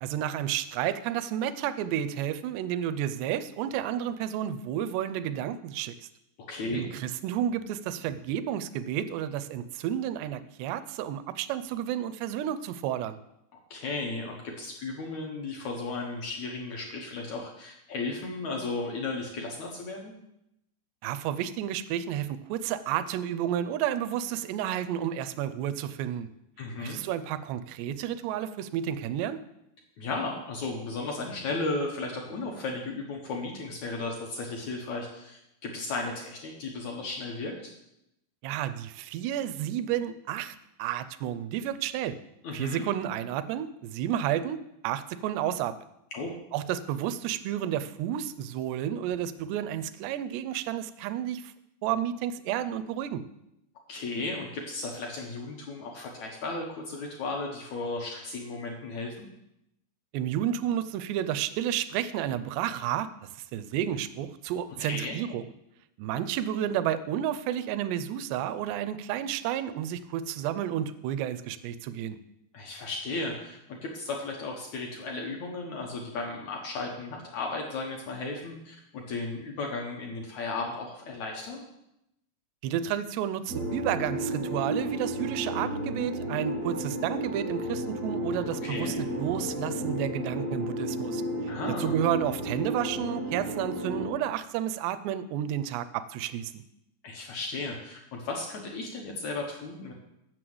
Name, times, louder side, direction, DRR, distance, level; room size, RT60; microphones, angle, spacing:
voice 1, 0.0-6.0 6.7-13.2 21.0-26.3 26.8-29.4 38.4-42.2 42.5-45.7 46.5-51.5 51.8-53.2 60.1-63.1 63.5-65.5 66.0-72.2 82.6-91.5 91.8-96.6, right 10 dB, 85° right, 13 dB, 2.7 m, -31 dB
voice 2, 6.5-6.8 13.7-20.1 26.6-27.0 30.0-37.7 42.4-42.8 46.1-46.3 53.9-59.3 64.8-65.1 72.5-81.6 88.6-88.9 91.5-91.9 97.0-99.9, left 3 dB, 75° left, 1 dB, 1.6 m, -35 dB
sound 1, 83.5-94.1, equal, 65° right, 0.9 m, -33 dB
7.8 x 6.3 x 7.8 m, 0.83 s
omnidirectional pair, 4.8 m